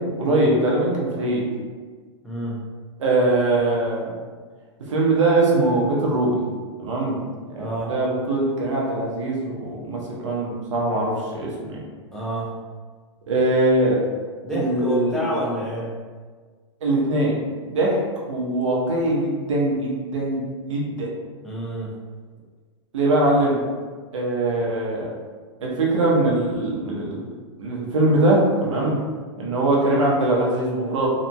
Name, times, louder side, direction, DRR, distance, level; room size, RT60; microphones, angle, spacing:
voice 1, 0.2-1.4 3.0-4.1 4.9-6.3 6.8-7.2 7.6-11.8 13.3-14.0 14.5-15.2 16.8-17.4 17.6-18.0 18.3-21.1 22.9-23.6 24.1-25.1 25.6-27.3 27.6-29.0 29.4-31.1, right 2 dB, 85° right, -3 dB, 0.8 m, -22 dB
voice 2, 2.2-2.6 7.6-7.9 12.1-12.6 14.4-15.9 21.4-21.9, equal, 5° left, -6 dB, 0.7 m, -28 dB
2.8 x 2.5 x 2.2 m, 1.5 s
hypercardioid pair, 120°, 15 cm